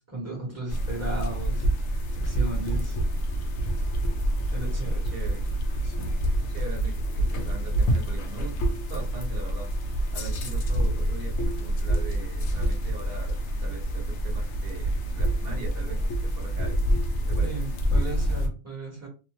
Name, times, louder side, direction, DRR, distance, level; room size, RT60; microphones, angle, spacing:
voice 1, 0.0-1.6 2.1-3.0 4.5-5.0 5.8-6.1 17.4-19.1, right 2 dB, 15° right, -2 dB, 0.9 m, -35 dB
sound 1, 0.7-18.5, right 1 dB, 65° left, 0.8 m, -27 dB
voice 2, 5.0-5.4 6.4-8.5 8.9-16.9 17.2-17.7, right 3 dB, 50° right, 1 dB, 0.9 m, -41 dB
2.6 x 2.2 x 3.0 m, 0.34 s
omnidirectional pair, 1.4 m